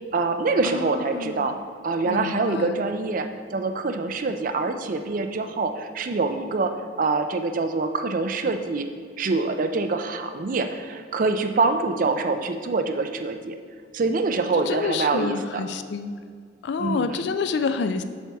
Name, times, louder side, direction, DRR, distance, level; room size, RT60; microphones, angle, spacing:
voice 1, 0.1-1.6 1.8-8.9 9.2-13.6 13.9-15.6 16.8-17.2, right 3 dB, 45° right, 7 dB, 0.4 m, -25 dB
voice 2, 0.6-1.5 2.1-2.8 14.7-16.1 16.6-18.0, left 4 dB, 60° left, 10 dB, 0.4 m, -28 dB
7.0 x 6.1 x 3.4 m, 2.1 s
head